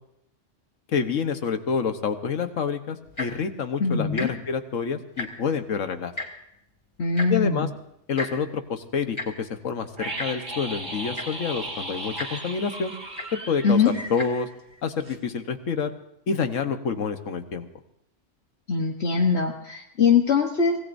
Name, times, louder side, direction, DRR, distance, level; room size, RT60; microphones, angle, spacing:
voice 1, 0.9-6.1 7.3-7.7 8.1-12.9 13.5-13.8 14.1-14.5 14.8-15.9 16.3-17.7, left 6 dB, 85° left, 8 dB, 1.5 m, -28 dB
Tick-tock, 3.0-3.4 4.1-4.3 4.6-4.7 5.0-5.5 6.2-6.3 7.2-7.3 8.2-8.3 9.2-9.3 10.2-10.3 10.9-11.0 11.1-11.5 12.2-12.3 13.2-13.3 14.1-14.3 15.0-15.1, left 2 dB, 20° left, 2.3 m, -33 dB
voice 2, 3.8-4.3 7.0-7.7 13.6-13.9 18.7-20.8, left 5 dB, 60° left, 1 dB, 1.5 m, -22 dB
sound 1, 10.0-14.8 15.0-15.2, right 1 dB, 35° right, 2.4 m, -36 dB
25.0 x 17.5 x 2.7 m, 0.78 s
omnidirectional pair, 1.3 m